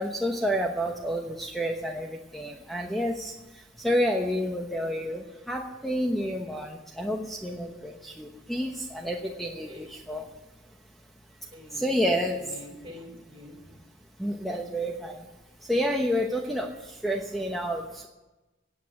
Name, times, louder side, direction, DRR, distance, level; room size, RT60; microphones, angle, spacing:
voice 1, 0.0-3.3 3.8-10.2 11.7-12.4 14.2-15.2 15.7-18.1, equal, ahead, 1 dB, 1.0 m, -29 dB
voice 2, 11.5-13.9, left 1 dB, 25° right, 3 dB, 4.1 m, -46 dB
16.5 x 8.8 x 7.7 m, 1.1 s
head